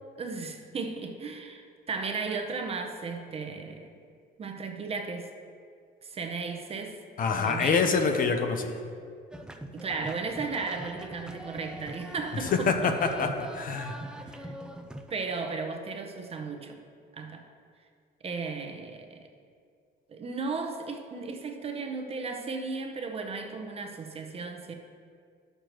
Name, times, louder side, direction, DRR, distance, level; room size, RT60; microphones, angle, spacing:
voice 1, 0.2-3.9 4.4-5.3 6.0-7.0 7.4-8.0 9.7-12.9 14.3-14.5 15.1-16.8 17.1-17.5 18.2-19.3 20.1-24.7, right 4 dB, 30° right, 4 dB, 0.7 m, -35 dB
voice 2, 7.2-8.7 12.5-14.0, left 5 dB, 45° left, 5 dB, 0.7 m, -26 dB
sound 1, 9.3-15.2, right 1 dB, 5° right, 0.4 m, -43 dB
11.5 x 6.6 x 3.1 m, 2.2 s
cardioid pair, 130°, 20 cm